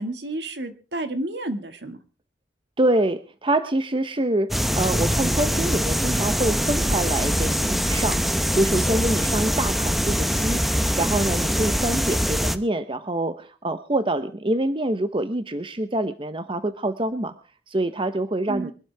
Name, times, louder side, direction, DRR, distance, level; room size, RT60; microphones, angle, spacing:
voice 1, 0.0-2.0 18.5-18.7, right 1 dB, 75° right, 8 dB, 2.1 m, -30 dB
voice 2, 2.8-8.2 8.5-17.3 17.7-18.7, right 1 dB, 30° right, 10 dB, 0.9 m, -25 dB
sound 1, 4.5-12.6, equal, ahead, 0.9 m, -23 dB
24.0 x 12.5 x 3.5 m, 0.35 s
head